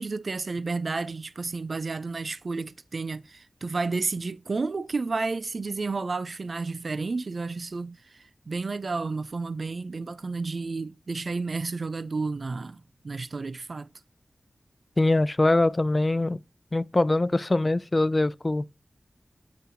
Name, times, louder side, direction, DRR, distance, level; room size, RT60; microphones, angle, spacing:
voice 1, 0.0-13.9, right 3 dB, 65° right, 0.4 m, -31 dB
voice 2, 15.0-16.4 16.7-18.6, left 2 dB, 35° left, 0.4 m, -23 dB
7.7 x 5.5 x 3.7 m
wide cardioid pair, 60°, 0 cm